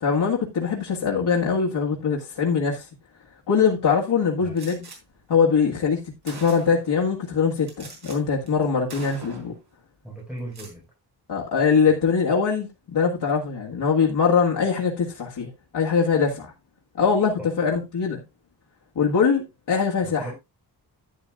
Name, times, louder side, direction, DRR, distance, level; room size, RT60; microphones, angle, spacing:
voice 1, 0.0-2.9 3.5-4.8 5.3-9.5 11.3-16.5 17.0-18.2 19.0-20.3, left 6 dB, 85° left, 1.8 m, -22 dB
Gunshot gunfire, 4.6-5.0 5.8-5.9 6.3-6.9 7.7-8.2 8.5-8.6 8.9-9.6 10.4-10.8, right 3 dB, 70° right, 4.5 m, -41 dB
voice 2, 10.0-10.8 11.9-12.0 17.4-17.5 20.0-20.3, right 1 dB, ahead, 4.6 m, -37 dB
11.0 x 10.0 x 2.4 m
wide cardioid pair, 160°, 40 cm